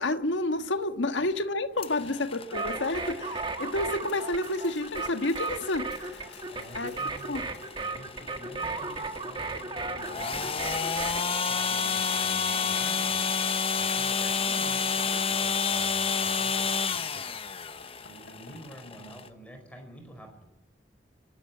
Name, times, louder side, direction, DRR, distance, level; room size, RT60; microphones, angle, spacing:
voice 1, 0.0-6.3 6.7-6.9 7.3-7.4, left 2 dB, 90° left, 9 dB, 1.5 m, -30 dB
sound 1, 1.8-19.3, left 5 dB, 30° left, 0.9 m, -31 dB
sound 2, 2.5-11.2, right 3 dB, 25° right, 1.4 m, -35 dB
Run, 4.1-7.9 8.4-17.5 17.8-19.2, left 3 dB, 70° left, 5.5 m, -56 dB
voice 2, 6.5-10.5 11.5-13.2 13.7-17.7 18.0-20.4, equal, 5° left, 3 dB, 5.1 m, -48 dB
29.5 x 12.0 x 8.7 m, 0.94 s
head